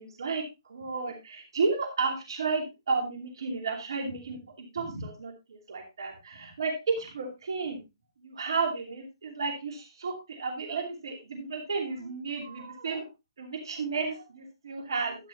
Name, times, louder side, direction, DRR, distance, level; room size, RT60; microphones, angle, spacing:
voice 1, 0.0-4.4 4.7-7.8 8.2-13.1 13.4-15.3, right 4 dB, 65° right, 3 dB, 2.6 m, -32 dB
12.0 x 9.1 x 2.8 m, 0.24 s
figure-of-eight pair, 135°, 3 cm